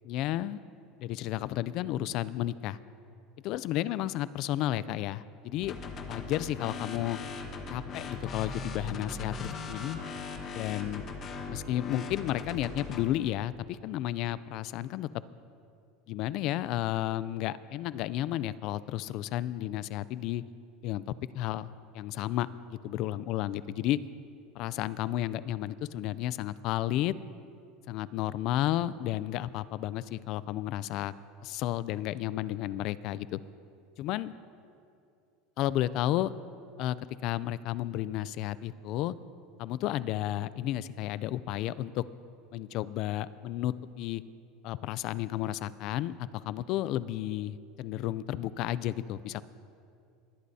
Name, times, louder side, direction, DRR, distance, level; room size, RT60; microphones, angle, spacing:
voice 1, 0.0-0.6 1.0-2.8 3.4-5.7 6.1-7.2 7.7-10.0 10.5-11.0 11.5-15.2 16.1-20.4 20.8-21.0 21.3-22.5 22.8-24.0 24.5-27.1 27.9-31.1 31.4-33.4 34.0-34.3 35.6-36.3 36.8-37.0 37.2-39.1 39.6-42.0 42.5-44.2 44.6-49.4, left 13 dB, 55° left, 17 dB, 0.4 m, -32 dB
sound 1, 5.6-13.1, left 4 dB, 35° left, 1.1 m, -39 dB
21.0 x 11.5 x 2.8 m, 2.5 s
supercardioid pair, 130°, 0 cm